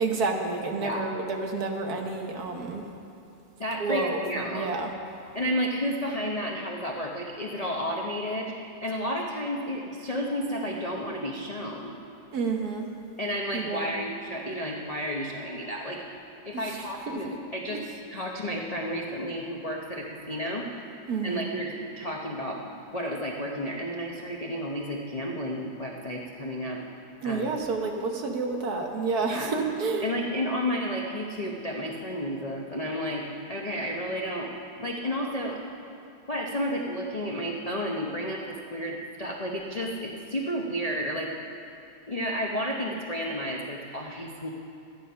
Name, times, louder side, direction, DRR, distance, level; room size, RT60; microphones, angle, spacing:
voice 1, 0.0-2.8 3.8-4.9 12.3-12.9 13.5-13.9 16.5-17.4 17.7-18.0 21.1-21.5 27.2-30.1, right 3 dB, 55° right, 2 dB, 1.4 m, -30 dB
voice 2, 3.6-4.7 5.3-12.0 13.2-16.0 16.4-17.8 18.1-20.7 20.9-26.8 27.2-27.6 29.3-29.5 30.0-33.2 33.5-34.5 34.8-35.6 36.3-41.3 42.1-44.5, equal, 75° left, -2 dB, 0.3 m, -32 dB
12.5 x 10.0 x 5.6 m, 2.6 s
omnidirectional pair, 2.2 m